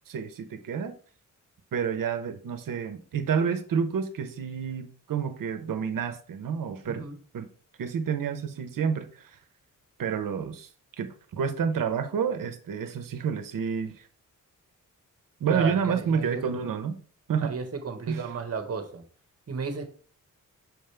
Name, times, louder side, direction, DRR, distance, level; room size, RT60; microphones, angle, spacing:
voice 1, 0.1-1.0 1.7-7.0 7.3-7.5 7.8-9.3 10.0-10.7 11.0-14.1 15.4-17.0 17.3-17.5 18.1-18.3, right 6 dB, 85° right, 1.0 m, -29 dB
voice 2, 15.5-16.5 17.4-19.0 19.5-19.9, right 5 dB, 50° right, 1.4 m, -33 dB
6.4 x 5.1 x 3.4 m
wide cardioid pair, 125°, 32 cm